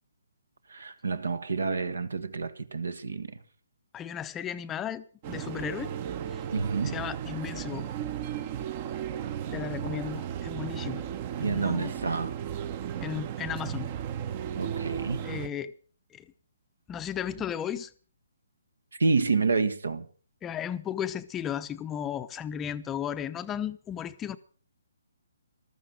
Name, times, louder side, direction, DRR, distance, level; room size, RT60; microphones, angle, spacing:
voice 1, 0.7-3.3 6.5-7.0 11.4-12.4 14.5-15.3 19.0-20.1, right 4 dB, 70° right, 1.5 m, -28 dB
voice 2, 3.9-5.9 6.3-6.4 6.8-7.9 9.5-11.1 11.4-11.9 13.0-13.9 15.2-15.7 16.1-16.3 16.9-17.9 20.4-24.4, left 9 dB, 15° left, 0.7 m, -35 dB
sound 1, 5.2-15.5, right 9 dB, 35° right, 0.9 m, -35 dB
15.0 x 13.0 x 6.3 m
figure-of-eight pair, 135°, 0 cm